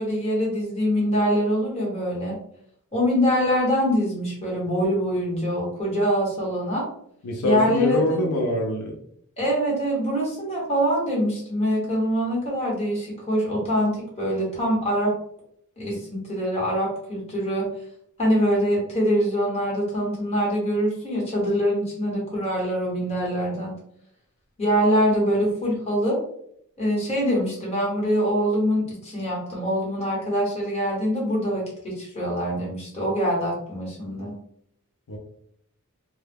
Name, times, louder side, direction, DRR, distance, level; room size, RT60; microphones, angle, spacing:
voice 1, 0.0-2.4 2.9-6.9 7.4-8.2 9.4-15.1 15.8-17.7 18.2-23.7 24.6-26.2 26.8-34.3, equal, 30° left, -4 dB, 1.1 m, -24 dB
voice 2, 7.2-8.9 35.1-35.2, equal, 90° left, 1 dB, 0.5 m, -24 dB
2.2 x 2.0 x 3.3 m, 0.70 s
head